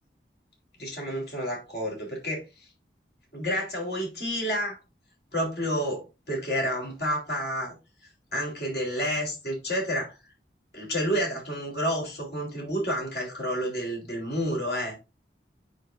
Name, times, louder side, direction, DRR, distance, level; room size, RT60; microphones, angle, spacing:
voice 1, 0.8-2.7 3.3-4.8 5.3-7.8 8.3-10.1 10.7-14.9, equal, 65° left, -1 dB, 3.8 m, -30 dB
9.5 x 4.8 x 2.6 m, 0.27 s
head